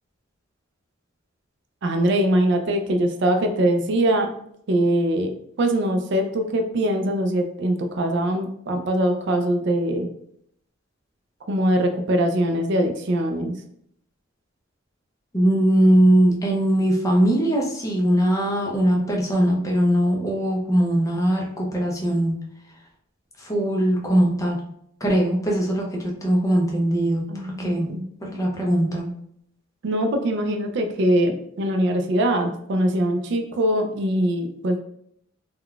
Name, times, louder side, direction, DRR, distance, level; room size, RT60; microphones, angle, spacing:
voice 1, 1.8-4.3 4.7-10.1 11.5-13.5 27.3-28.4 29.8-34.8, right 1 dB, 60° right, 4 dB, 0.4 m, -22 dB
voice 2, 15.3-22.3 23.4-24.6 25.0-29.1, right 1 dB, 15° left, -1 dB, 0.5 m, -21 dB
3.6 x 2.2 x 2.3 m, 0.71 s
head